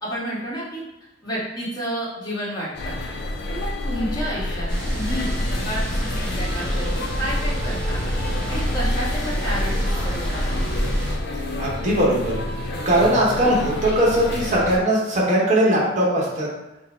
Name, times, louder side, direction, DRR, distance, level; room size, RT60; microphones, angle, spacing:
voice 1, 0.0-0.8 1.2-3.0 3.5-5.4 5.6-8.0 8.5-10.7, equal, 20° left, -7 dB, 1.3 m, -30 dB
sound 1, 2.7-14.8, left 1 dB, 60° left, 0.5 m, -30 dB
sound 2, 4.7-11.1, equal, 5° left, 1.3 m, -26 dB
voice 2, 11.6-12.3 12.9-16.5, right 1 dB, 40° right, -4 dB, 0.9 m, -19 dB
4.0 x 2.0 x 4.2 m, 0.99 s
head